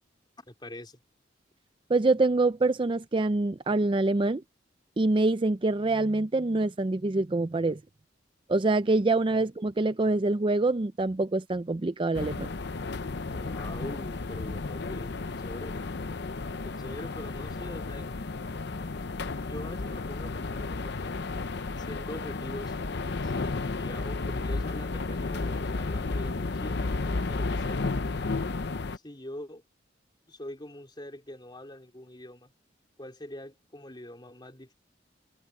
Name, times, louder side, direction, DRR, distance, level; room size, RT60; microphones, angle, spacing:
voice 1, 0.4-1.0 9.3-9.4 13.3-15.8 16.6-18.2 19.4-21.2 21.7-27.8 28.9-29.6 30.3-32.5 33.0-34.7, left 1 dB, 25° left, 4.0 m, -43 dB
voice 2, 1.9-4.4 5.0-7.8 8.5-12.5, right 2 dB, 25° right, 0.5 m, -25 dB
sound 1, 12.1-29.0, left 3 dB, 60° left, 0.8 m, -33 dB
head